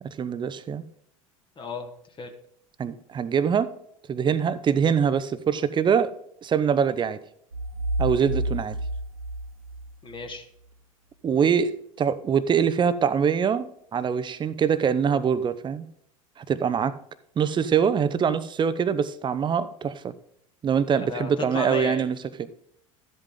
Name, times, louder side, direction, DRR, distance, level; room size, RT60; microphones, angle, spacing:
voice 1, 0.0-0.8 2.8-3.7 4.1-6.1 6.4-7.2 8.0-8.8 11.2-15.9 16.4-16.9 17.4-20.1 20.6-22.5, right 7 dB, 25° right, 14 dB, 0.8 m, -24 dB
voice 2, 1.6-2.3 10.0-10.4 20.9-22.1, left 4 dB, 30° left, 5 dB, 1.5 m, -34 dB
sound 1, 7.5-10.3, right 1 dB, 90° right, 0.7 m, -30 dB
12.5 x 8.1 x 3.8 m, 0.71 s
figure-of-eight pair, 75°, 17 cm